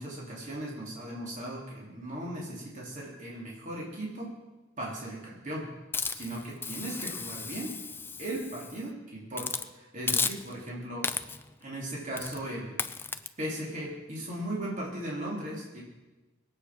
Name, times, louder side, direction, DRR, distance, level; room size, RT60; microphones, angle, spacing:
voice 1, 0.0-4.3 4.8-5.7 6.1-7.7 8.2-11.1 11.6-12.8 13.4-15.8, right 1 dB, 40° right, -4 dB, 3.5 m, -37 dB
Hiss, 5.9-8.8 9.3-9.7 10.1-10.7 11.0-11.5 12.2-12.4 12.8-13.3, left 5 dB, 10° left, 0.4 m, -34 dB
21.0 x 8.6 x 6.2 m, 1.1 s
head